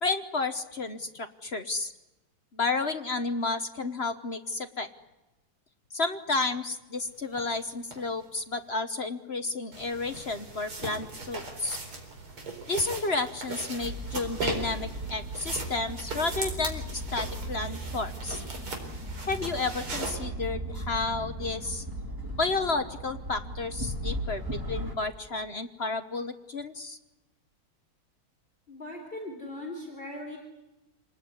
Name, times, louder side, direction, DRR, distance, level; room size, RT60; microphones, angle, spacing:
voice 1, 0.0-1.9 2.5-4.9 5.9-11.8 12.7-18.4 19.3-21.8 22.3-24.4 24.7-27.0, left 3 dB, 40° left, 9 dB, 1.0 m, -31 dB
sound 1, 7.3-7.4 7.9-8.0 9.7-20.1, right 3 dB, 80° right, 5.1 m, -39 dB
sound 2, 13.8-24.9, right 1 dB, 10° right, 2.4 m, -37 dB
voice 2, 28.7-30.4, left 1 dB, 25° left, 2 dB, 4.2 m, -39 dB
27.5 x 20.0 x 9.6 m, 1.0 s
omnidirectional pair, 2.4 m